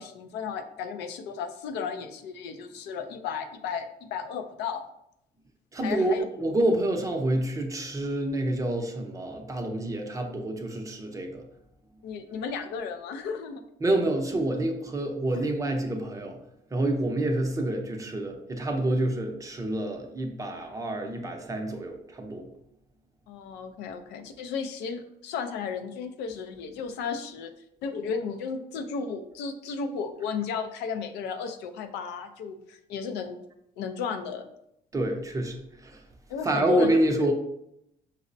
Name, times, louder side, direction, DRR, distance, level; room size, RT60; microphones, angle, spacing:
voice 1, 0.0-4.8 5.8-6.2 12.0-13.6 23.3-27.5 27.8-33.4 33.8-34.5 36.3-37.0, left 6 dB, 85° left, 7 dB, 0.4 m, -34 dB
voice 2, 5.7-11.4 13.8-16.4 16.7-22.5 34.9-36.0 36.4-37.3, right 1 dB, 20° right, 3 dB, 0.5 m, -28 dB
5.1 x 2.0 x 2.6 m, 0.79 s
cardioid pair, 110°, 17 cm